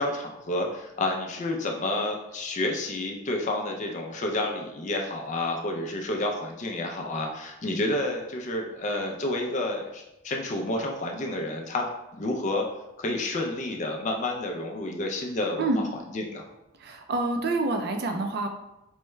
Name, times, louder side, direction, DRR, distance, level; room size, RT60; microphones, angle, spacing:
voice 1, 0.0-11.9 12.1-12.7 13.0-15.7 16.1-16.4, left 2 dB, 35° left, 2 dB, 0.4 m, -30 dB
voice 2, 16.8-18.5, right 2 dB, 50° right, 5 dB, 0.4 m, -27 dB
4.5 x 2.2 x 3.1 m, 0.94 s
head